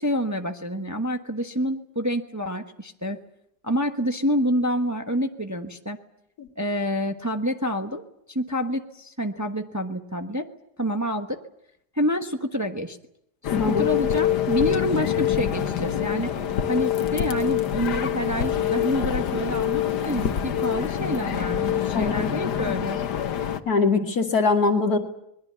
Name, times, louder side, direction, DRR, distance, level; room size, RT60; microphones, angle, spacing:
voice 1, 0.0-3.2 3.6-6.0 6.6-8.0 8.3-10.5 10.8-11.4 11.9-13.0 13.4-16.3 16.7-23.0, equal, 10° right, 5 dB, 1.1 m, -27 dB
sound 1, 13.4-23.6, left 10 dB, 85° left, 1.7 m, -25 dB
voice 2, 13.5-13.9 21.9-22.7 23.7-25.0, left 4 dB, 65° left, 5 dB, 2.5 m, -23 dB
26.0 x 21.5 x 7.0 m, 0.77 s
omnidirectional pair, 1.7 m